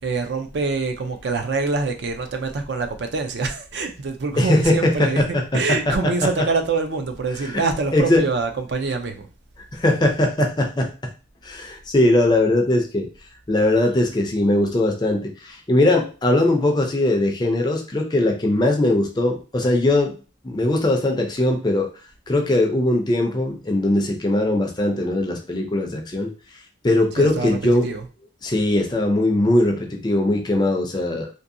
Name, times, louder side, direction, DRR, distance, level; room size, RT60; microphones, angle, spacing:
voice 1, 0.0-9.3 27.1-28.1, right 4 dB, 60° right, 0.4 m, -25 dB
voice 2, 4.4-6.3 7.5-7.6 7.9-8.2 9.7-10.9 11.4-13.1 13.5-20.1 20.4-21.9 22.3-26.3 26.8-27.9 28.4-31.3, left 1 dB, 20° left, 0.4 m, -20 dB
2.7 x 2.6 x 2.6 m
head